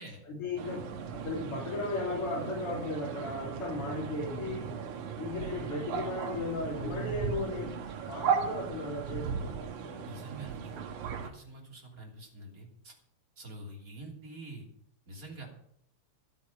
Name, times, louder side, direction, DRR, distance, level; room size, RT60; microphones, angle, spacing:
voice 1, 0.3-4.8 5.2-7.8 8.1-10.2, left 2 dB, 50° left, -4 dB, 3.6 m, -36 dB
sound 1, 0.6-11.3, right 6 dB, 80° right, 2.7 m, -36 dB
voice 2, 10.0-10.8 11.2-12.9 13.4-14.7 15.1-15.5, right 2 dB, 30° right, 0 dB, 3.5 m, -46 dB
13.0 x 8.4 x 8.5 m, 0.69 s
omnidirectional pair, 3.4 m